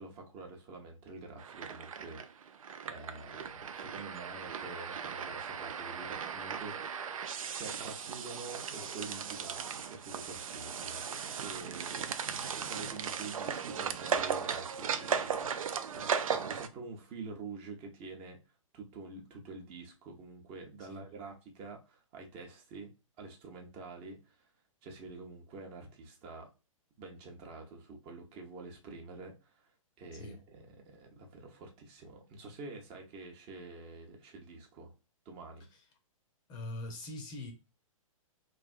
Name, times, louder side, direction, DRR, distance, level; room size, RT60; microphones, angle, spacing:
voice 1, 0.0-7.3 7.6-12.3 12.5-15.5 15.9-18.4 18.7-22.9 23.2-24.5 24.8-26.5 27.0-29.7 30.0-34.9 35.3-35.7, right 3 dB, 30° right, 0.7 m, -47 dB
sound 1, 1.4-16.7, right 7 dB, 75° right, 0.4 m, -37 dB
voice 2, 20.8-21.1 30.1-30.4 35.7-35.9 36.5-37.5, left 2 dB, 25° left, 0.6 m, -43 dB
3.2 x 2.4 x 2.4 m
figure-of-eight pair, 120°, 18 cm